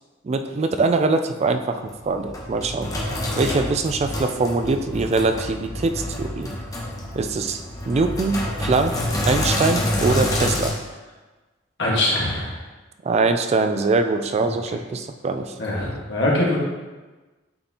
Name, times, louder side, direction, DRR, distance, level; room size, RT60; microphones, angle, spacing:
voice 1, 0.2-2.9 3.4-6.5 7.1-9.0 9.2-10.8 13.0-15.5, right 3 dB, 35° right, 8 dB, 0.3 m, -23 dB
Sink (filling or washing), 1.9-10.7, left 1 dB, 20° left, 0.9 m, -27 dB
voice 2, 11.8-12.5 15.6-16.6, left 1 dB, 65° left, -4 dB, 1.6 m, -22 dB
8.5 x 4.2 x 2.9 m, 1.2 s
head